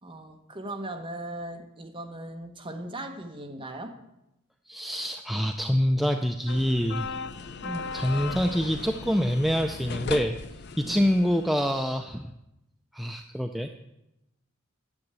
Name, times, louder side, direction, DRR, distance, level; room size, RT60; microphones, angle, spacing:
voice 1, 0.0-4.0 7.6-7.9 10.8-11.0, right 1 dB, 25° right, 4 dB, 1.2 m, -38 dB
voice 2, 4.7-7.3 7.9-10.4 10.8-12.3 12.9-13.7, equal, ahead, 5 dB, 0.4 m, -26 dB
sound 1, 6.5-11.9, left 4 dB, 55° left, 0.5 m, -37 dB
10.5 x 7.1 x 8.2 m, 0.90 s
head